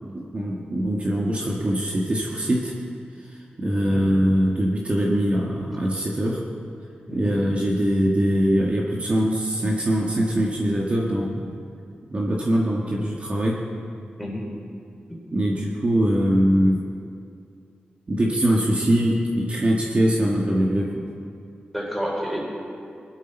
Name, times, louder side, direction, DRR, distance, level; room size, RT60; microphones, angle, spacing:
voice 1, 0.1-2.7 3.3-6.4 7.1-11.5 12.1-13.6 15.3-16.8 18.1-21.0, equal, 40° right, -3 dB, 1.5 m, -22 dB
voice 2, 3.7-4.1 7.1-7.4 14.2-14.5 21.7-22.4, equal, ahead, -4 dB, 4.2 m, -30 dB
20.5 x 12.0 x 4.4 m, 2.4 s
wide cardioid pair, 105°, 3 cm